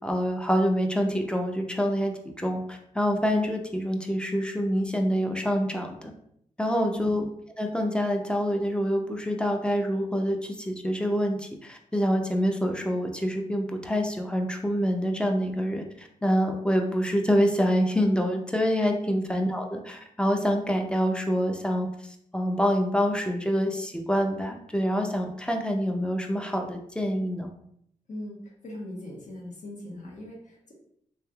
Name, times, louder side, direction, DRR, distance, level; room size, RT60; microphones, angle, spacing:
voice 1, 0.0-6.1 6.6-7.2 7.6-27.5, equal, 5° left, 3 dB, 0.5 m, -26 dB
voice 2, 28.1-30.7, left 1 dB, 65° left, -3 dB, 1.1 m, -40 dB
3.2 x 2.7 x 2.3 m, 0.71 s
cardioid pair, 70°, 14 cm